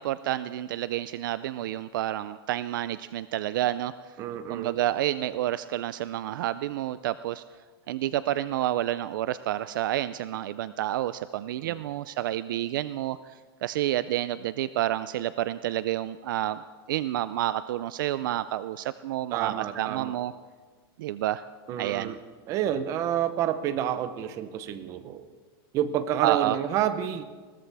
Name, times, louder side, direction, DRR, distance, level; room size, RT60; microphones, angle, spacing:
voice 1, 0.0-3.9 4.5-7.4 7.9-16.6 16.9-20.3 21.0-21.4 21.8-22.1 26.2-26.6, right 13 dB, 55° right, 15 dB, 0.4 m, -29 dB
voice 2, 4.2-4.8 11.6-11.8 19.3-20.2 21.7-22.2 22.5-25.3 25.7-27.2, right 10 dB, 25° right, 11 dB, 0.7 m, -29 dB
21.0 x 18.0 x 3.5 m, 1.4 s
supercardioid pair, 170°, 13 cm